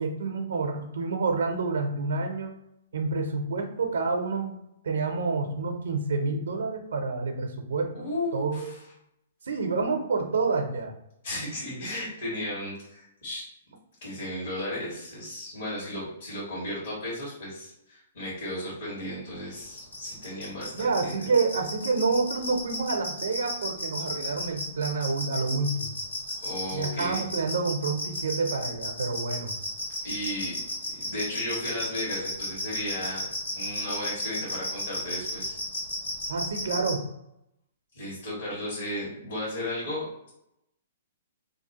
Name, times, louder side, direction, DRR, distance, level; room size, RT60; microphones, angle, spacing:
voice 1, 0.0-2.5 2.9-4.6 4.8-8.6 9.4-10.9 20.7-25.9 26.7-29.5 36.3-37.0, right 4 dB, 75° right, 4 dB, 0.5 m, -28 dB
voice 2, 7.9-8.8 11.2-13.4 14.0-21.2 26.4-27.2 30.0-30.6 30.9-33.3 33.5-35.6 37.9-40.3, left 1 dB, 70° left, -9 dB, 1.4 m, -34 dB
sound 1, 19.8-36.9, left 1 dB, 90° left, 1.2 m, -33 dB
2.6 x 2.2 x 2.8 m, 0.81 s
hypercardioid pair, 125°, 0 cm